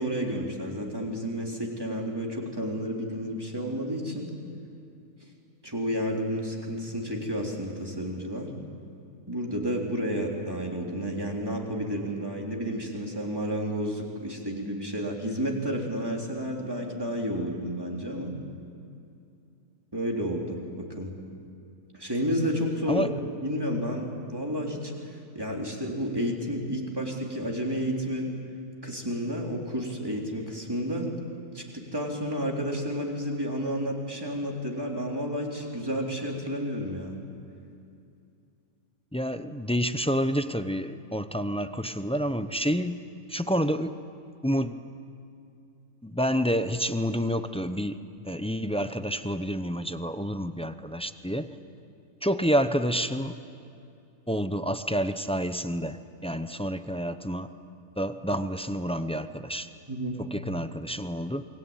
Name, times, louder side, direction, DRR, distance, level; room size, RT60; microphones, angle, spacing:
voice 1, 0.0-4.3 5.6-8.5 9.3-18.4 19.9-21.1 21.9-23.1 23.4-28.3 28.8-31.1 31.5-37.2 59.9-60.1, equal, 15° right, -1 dB, 3.9 m, -31 dB
voice 2, 39.1-43.0 43.3-44.0 44.4-44.8 46.0-48.0 48.2-51.5 52.2-53.3 54.3-57.5 58.0-59.7 60.2-61.4, equal, 5° left, 10 dB, 0.5 m, -28 dB
28.0 x 23.0 x 9.0 m, 2.6 s
omnidirectional pair, 1.5 m